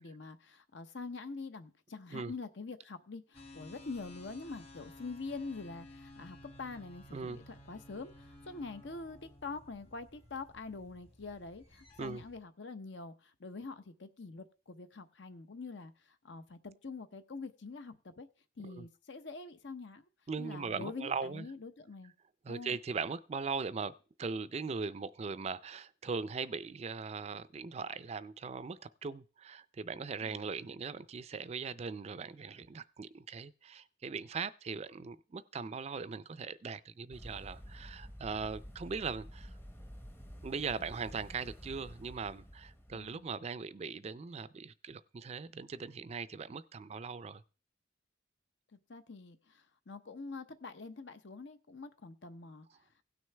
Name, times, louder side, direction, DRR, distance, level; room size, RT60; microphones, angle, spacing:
voice 1, 0.0-18.3 18.6-20.0 20.4-22.1 22.5-22.8 30.2-30.4 42.9-43.3 48.7-52.7, left 3 dB, 70° left, 0.8 m, -45 dB
sound 1, 3.3-12.4, left 1 dB, 35° left, 1.4 m, -55 dB
voice 2, 20.3-21.5 22.4-39.5 40.4-47.4, right 5 dB, 35° right, 0.4 m, -40 dB
sound 2, 37.1-43.3, equal, 10° left, 0.7 m, -50 dB
17.0 x 6.3 x 3.3 m
head